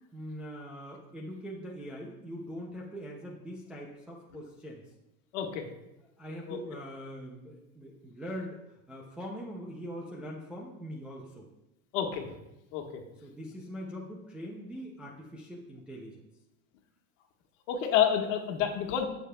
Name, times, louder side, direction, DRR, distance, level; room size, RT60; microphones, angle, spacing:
voice 1, 0.1-4.8 6.2-8.6 8.9-11.5 13.2-16.2, equal, 5° right, -4 dB, 0.3 m, -42 dB
voice 2, 5.3-5.6 6.5-6.6 11.9-12.3 12.7-13.0 17.7-19.1, left 9 dB, 65° left, 3 dB, 1.5 m, -28 dB
15.5 x 6.7 x 2.2 m, 0.92 s
supercardioid pair, 155°, 41 cm